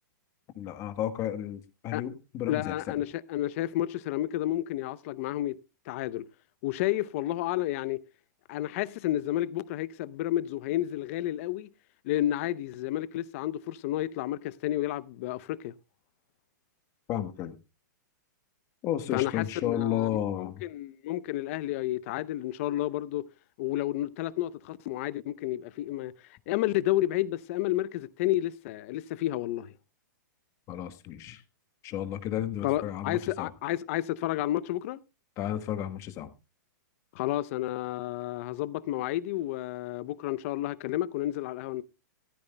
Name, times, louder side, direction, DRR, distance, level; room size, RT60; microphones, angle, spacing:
voice 1, 0.6-2.7 17.1-17.5 18.8-20.6 30.7-31.4 31.8-33.5 35.4-36.3, left 11 dB, 30° left, 1.2 m, -32 dB
voice 2, 2.5-5.6 5.9-6.3 6.6-8.0 8.5-11.7 12.0-15.7 19.1-20.1 20.4-23.3 23.6-26.1 26.5-29.7 32.6-35.0 37.1-41.8, left 14 dB, 45° left, 0.6 m, -31 dB
14.0 x 14.0 x 2.2 m
hypercardioid pair, 150°, 10 cm